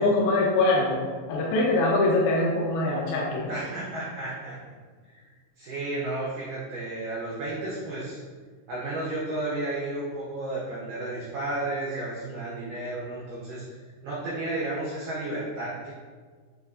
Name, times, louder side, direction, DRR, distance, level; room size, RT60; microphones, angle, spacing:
voice 1, 0.0-3.5, left 2 dB, 80° left, -2 dB, 2.4 m, -23 dB
voice 2, 3.5-4.6 5.1-5.3 5.6-8.2 8.7-13.6 14.0-15.9, right 2 dB, 90° right, -7 dB, 1.9 m, -32 dB
6.4 x 2.9 x 2.4 m, 1.5 s
omnidirectional pair, 5.0 m